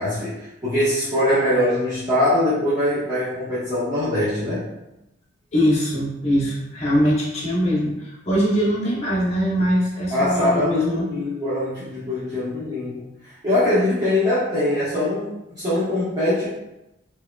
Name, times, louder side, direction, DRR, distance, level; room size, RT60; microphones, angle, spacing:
voice 1, 0.0-4.6 10.1-16.5, left 1 dB, 20° right, -13 dB, 1.0 m, -22 dB
voice 2, 5.5-11.1, equal, 35° left, -6 dB, 0.8 m, -22 dB
4.6 x 2.2 x 2.3 m, 0.92 s
head